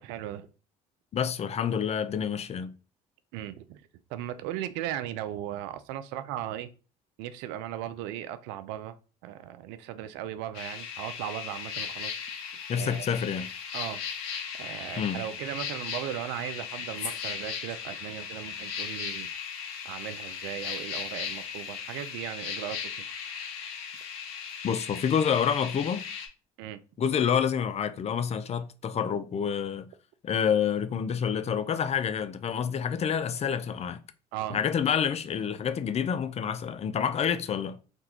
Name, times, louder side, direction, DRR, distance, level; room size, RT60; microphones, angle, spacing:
voice 1, 0.0-0.5 3.3-6.7 7.2-9.0 9.2-12.2 12.7-13.1 13.7-14.0 14.6-19.3 19.8-23.0 26.6-26.8 34.3-34.6, right 12 dB, 75° right, 0.4 m, -37 dB
voice 2, 1.1-2.7 12.7-13.5 15.0-15.2 24.6-26.1 27.0-29.9 30.2-34.0 34.5-37.8, left 7 dB, 35° left, 0.4 m, -28 dB
sound 1, 10.5-26.3, left 7 dB, 80° left, 0.7 m, -37 dB
3.5 x 2.3 x 2.8 m
hypercardioid pair, 65°, 18 cm